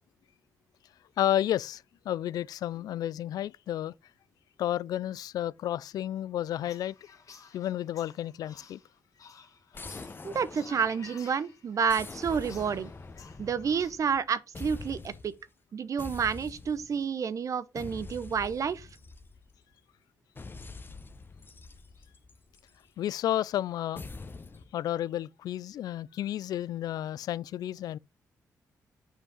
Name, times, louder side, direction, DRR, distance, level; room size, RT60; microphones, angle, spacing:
voice 1, 1.2-3.9 4.6-7.0 7.5-8.8 23.0-24.0 24.7-28.0, left 12 dB, 75° left, 0.3 m, -31 dB
sound 1, 6.5-13.9, left 6 dB, 60° left, 1.7 m, -53 dB
sound 2, 9.7-11.3 11.9-14.2 14.5-15.4 16.0-17.0 17.7-19.6 20.4-22.8 23.9-24.7, left 3 dB, 35° left, 1.0 m, -44 dB
voice 2, 10.2-12.9 13.4-15.3 15.7-18.9, right 6 dB, 55° right, 0.8 m, -30 dB
7.1 x 5.6 x 5.4 m
cardioid pair, 65°, 7 cm